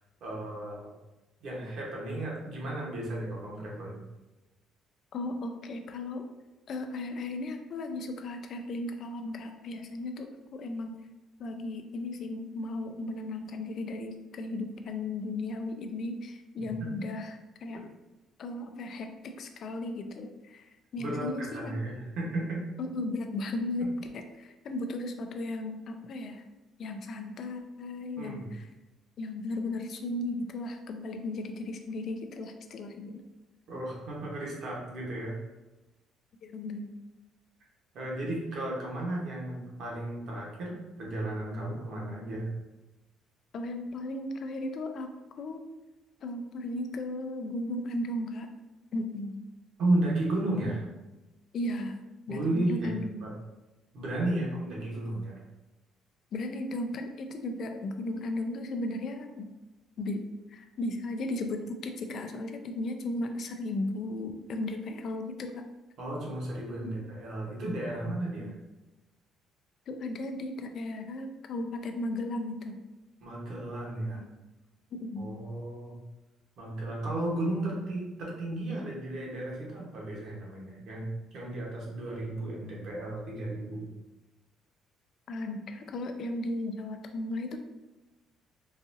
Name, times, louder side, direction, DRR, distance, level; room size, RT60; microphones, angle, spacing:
voice 1, 0.2-0.9 1.4-4.0 16.6-16.7 21.0-22.6 28.2-28.5 33.7-35.3 37.9-42.5 49.8-50.8 52.3-52.9 53.2-53.3 53.9-55.4 66.0-68.5 73.2-74.2 75.2-76.0 76.6-81.1 81.3-83.9, right 1 dB, 60° right, -4 dB, 1.2 m, -33 dB
voice 2, 5.1-6.2 6.7-10.9 11.4-17.8 18.4-20.7 20.9-21.7 22.8-23.9 24.1-26.4 26.8-28.6 29.2-33.2 36.4-36.9 43.5-45.1 45.4-45.6 46.2-48.5 48.9-49.3 51.5-52.0 52.3-53.2 56.3-59.5 60.0-60.2 60.5-65.6 68.4-68.5 69.9-72.8 74.2-74.4 74.9-75.3 85.3-87.6, left 2 dB, 50° left, 6 dB, 0.4 m, -35 dB
3.9 x 2.4 x 2.7 m, 1.1 s
cardioid pair, 125°, 0 cm